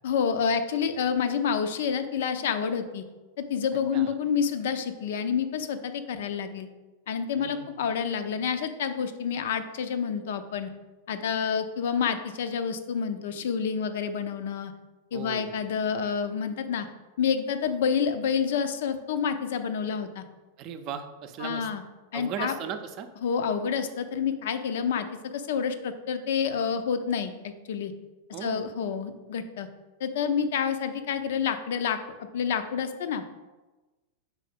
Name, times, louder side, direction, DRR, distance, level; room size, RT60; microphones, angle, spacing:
voice 1, 0.0-3.0 3.4-6.7 7.1-10.7 11.1-14.7 15.1-16.9 17.2-20.2 21.4-21.8 22.1-22.6 23.2-27.9 28.4-29.7 30.0-33.2, left 7 dB, 55° left, 9 dB, 0.5 m, -28 dB
voice 2, 7.4-7.7 15.1-15.5 20.6-21.7 22.1-23.1 28.3-28.7, right 7 dB, 40° right, 8 dB, 0.5 m, -37 dB
4.9 x 4.1 x 5.0 m, 1.2 s
figure-of-eight pair, 90°, 0 cm